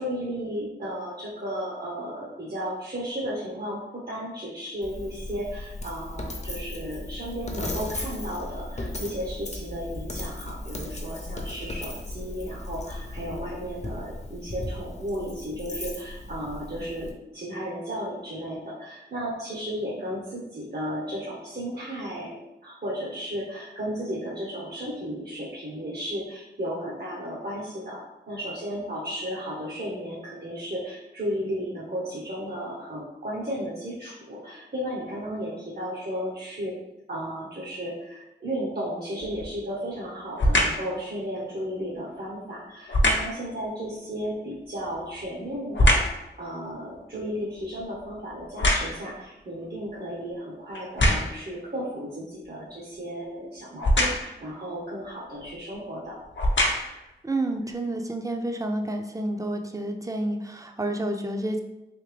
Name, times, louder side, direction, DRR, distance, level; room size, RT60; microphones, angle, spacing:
voice 1, 0.0-36.7 37.1-56.2, equal, 55° right, -6 dB, 0.9 m, -34 dB
Coin (dropping), 4.8-17.1, left 1 dB, 35° left, 0.6 m, -36 dB
sound 1, 39.2-39.6 40.4-40.9 42.9-43.4 44.8-46.2 46.7-49.2 49.9-50.0 50.7-51.5 53.8-54.4 55.4-55.6 56.2-57.1 57.7-57.8, left 1 dB, 75° left, 0.7 m, -24 dB
voice 2, 57.2-61.6, right 1 dB, 15° right, 4 dB, 0.5 m, -29 dB
3.5 x 2.8 x 3.3 m, 0.96 s
cardioid pair, 45°, 19 cm